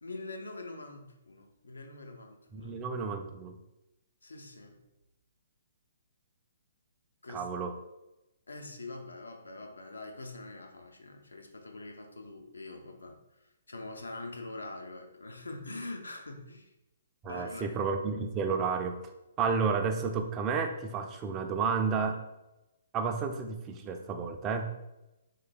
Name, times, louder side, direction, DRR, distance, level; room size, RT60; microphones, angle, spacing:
voice 1, 0.0-2.7 4.2-4.8 7.2-7.5 8.5-16.7 17.2-17.7, left 2 dB, 75° left, 3 dB, 0.5 m, -44 dB
voice 2, 2.5-3.6 7.3-7.7 17.2-19.0 19.4-22.2 22.9-24.7, right 5 dB, 20° right, 6 dB, 0.3 m, -31 dB
3.7 x 3.2 x 2.3 m, 0.93 s
figure-of-eight pair, 125°, 0 cm